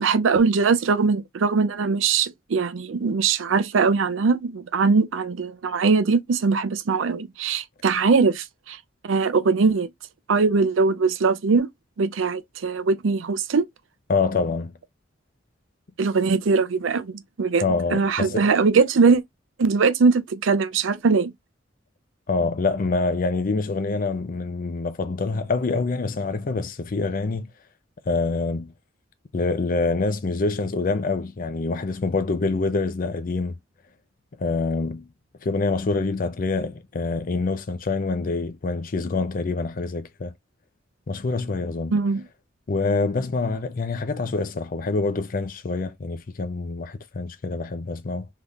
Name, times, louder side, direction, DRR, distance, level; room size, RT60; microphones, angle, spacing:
voice 1, 0.0-8.8 9.0-9.9 10.3-11.7 12.0-13.7 16.0-17.6 17.9-19.2 19.6-21.3 41.9-42.2, right 4 dB, 85° right, 0.5 m, -21 dB
voice 2, 14.1-14.7 17.6-18.5 22.3-27.5 28.1-28.7 29.3-33.6 34.4-35.1 35.4-40.3 41.1-42.0 42.7-48.3, left 3 dB, 45° left, 0.5 m, -26 dB
3.5 x 2.8 x 2.4 m
head